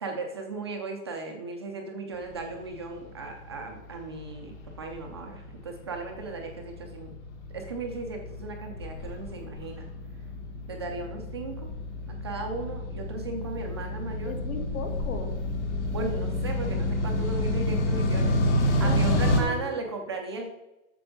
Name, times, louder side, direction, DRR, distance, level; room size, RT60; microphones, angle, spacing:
voice 1, 0.0-7.1 7.5-9.9 10.7-11.7 12.1-14.3 15.9-20.5, right 3 dB, 20° right, 2 dB, 0.4 m, -36 dB
sound 1, 2.4-19.4, left 1 dB, 55° left, 1.9 m, -29 dB
voice 2, 14.3-15.3 18.8-19.7, left 4 dB, 85° left, 6 dB, 2.0 m, -36 dB
7.8 x 6.8 x 5.1 m, 0.96 s
supercardioid pair, 180°, 41 cm